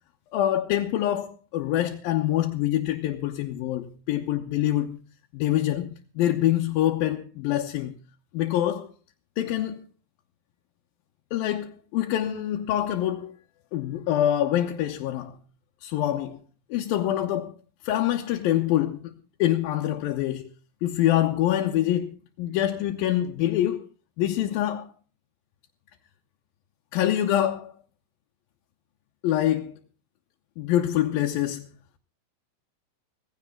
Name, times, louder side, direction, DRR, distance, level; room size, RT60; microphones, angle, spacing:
voice 1, 0.3-5.0 5.3-7.9 8.3-8.9 9.4-9.8 11.3-13.3 13.7-15.4 15.8-16.4 16.7-17.5 17.8-19.1 19.4-20.5 20.8-23.8 24.2-24.9 26.9-27.7 29.2-29.8 30.6-31.7, left 12 dB, 90° left, 2.8 m, -25 dB
18.0 x 16.0 x 3.8 m
omnidirectional pair, 4.0 m